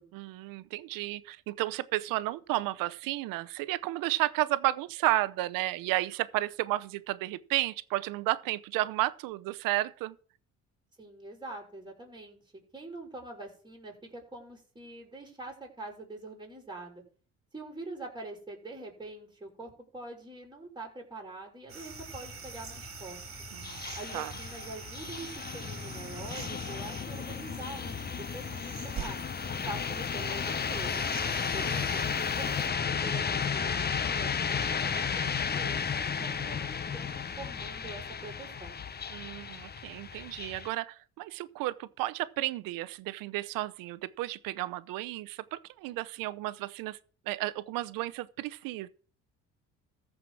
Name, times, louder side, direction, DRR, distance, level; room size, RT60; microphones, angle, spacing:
voice 1, 0.1-10.2 23.5-23.8 24.1-24.3 39.1-47.0 47.3-48.9, right 17 dB, 80° right, 0.7 m, -32 dB
voice 2, 11.0-12.4 12.7-17.0 17.5-23.2 24.0-29.2 29.7-31.1 31.5-38.8, right 2 dB, 15° right, 5.6 m, -44 dB
sound 1, 21.7-40.7, left 6 dB, 30° left, 0.8 m, -34 dB
sound 2, 21.7-32.7, right 6 dB, 45° right, 2.7 m, -45 dB
14.5 x 4.9 x 6.1 m
supercardioid pair, 75°, 33 cm